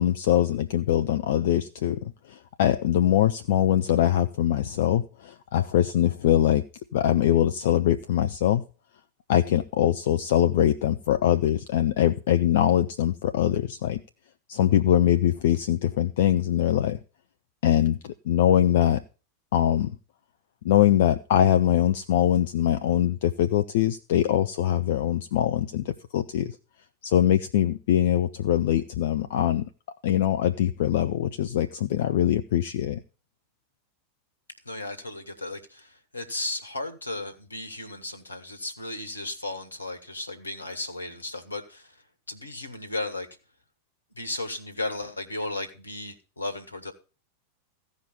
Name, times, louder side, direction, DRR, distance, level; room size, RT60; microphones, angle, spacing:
voice 1, 0.0-2.0 2.3-6.6 6.9-8.6 9.3-14.0 14.5-17.0 17.6-18.0 18.3-19.0 19.5-19.9 20.6-26.6 27.0-29.6 30.0-33.0, left 11 dB, 55° left, 9 dB, 0.6 m, -22 dB
voice 2, 34.6-41.9 42.3-43.3 44.1-46.9, left 2 dB, 80° left, 9 dB, 1.5 m, -35 dB
15.5 x 5.2 x 6.7 m, 0.35 s
figure-of-eight pair, 90°, 0 cm